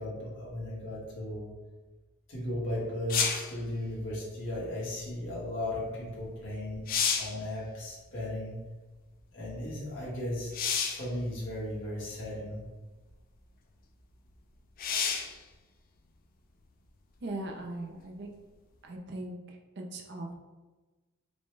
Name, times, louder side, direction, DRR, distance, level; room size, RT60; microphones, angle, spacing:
voice 1, 0.0-1.5 2.3-6.8 7.2-8.6 9.3-10.6 10.9-12.6, left 1 dB, 60° left, -7 dB, 1.3 m, -36 dB
sound 1, 3.1-3.5 6.2-6.3 6.7-7.4 10.5-11.1 12.1-12.2 14.8-15.4 19.0-19.1, left 6 dB, 45° left, 0.4 m, -29 dB
voice 2, 17.2-18.3 18.8-20.3, right 2 dB, 55° right, 1 dB, 0.5 m, -39 dB
5.3 x 2.2 x 3.2 m, 1.2 s
head